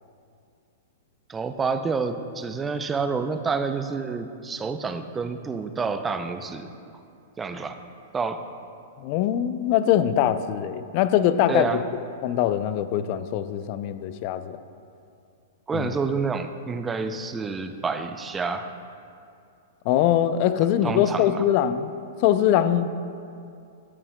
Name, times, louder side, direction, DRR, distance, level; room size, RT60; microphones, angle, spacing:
voice 1, 1.3-6.7 7.4-7.8 8.1-8.5 11.5-11.8 15.7-18.7 20.8-21.4, right 4 dB, 15° right, 9 dB, 0.4 m, -28 dB
voice 2, 9.0-11.8 12.2-14.6 15.7-15.9 19.9-21.9 22.2-22.9, left 10 dB, 50° left, 12 dB, 0.3 m, -22 dB
9.6 x 8.4 x 2.2 m, 2.5 s
hypercardioid pair, 125°, 0 cm